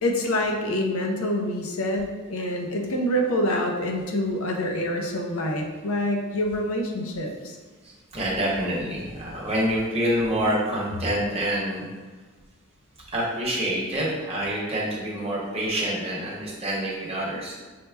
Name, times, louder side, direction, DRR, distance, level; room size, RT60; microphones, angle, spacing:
voice 1, 0.0-7.6, left 1 dB, 70° left, 2 dB, 0.6 m, -26 dB
voice 2, 7.8-11.9 13.1-17.5, right 1 dB, 30° right, -5 dB, 1.0 m, -27 dB
5.4 x 2.1 x 3.3 m, 1.3 s
head